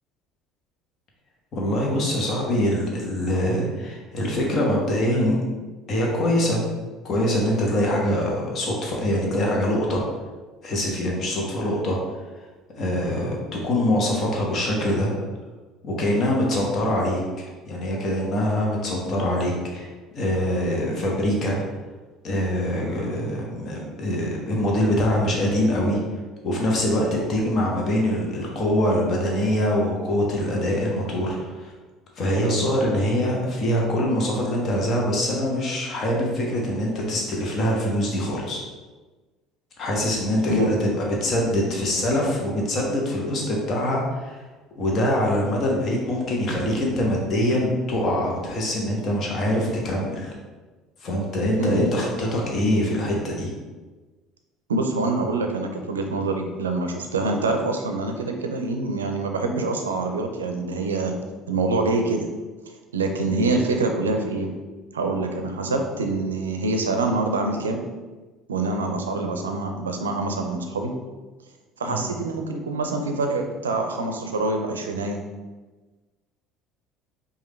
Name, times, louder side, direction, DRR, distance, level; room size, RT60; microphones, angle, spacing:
voice 1, 1.5-5.3 5.9-6.6 7.0-10.0 10.6-12.0 12.8-15.1 15.8-19.9 20.1-21.6 22.2-26.0 26.4-31.7 32.2-38.6 39.8-44.4 44.8-50.3 51.0-53.5 63.4-63.5 71.8-72.2, left 1 dB, 45° left, -2 dB, 1.1 m, -24 dB
voice 2, 54.7-61.2 61.5-62.3 62.9-64.5 64.9-67.8 68.5-70.9 71.8-75.2, right 3 dB, 85° right, 4 dB, 0.4 m, -25 dB
4.9 x 2.6 x 3.2 m, 1.3 s
hypercardioid pair, 60°, 0 cm